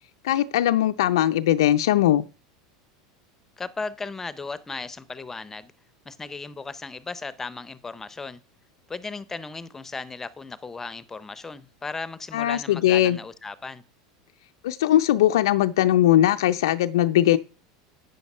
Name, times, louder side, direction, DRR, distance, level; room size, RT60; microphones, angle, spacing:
voice 1, 0.2-2.2 12.3-13.2 14.6-17.4, left 12 dB, 80° left, 0.5 m, -20 dB
voice 2, 3.6-5.7 6.0-8.4 8.9-13.8, left 4 dB, 15° left, 0.7 m, -36 dB
9.1 x 7.1 x 5.4 m
hypercardioid pair, 105°, 2 cm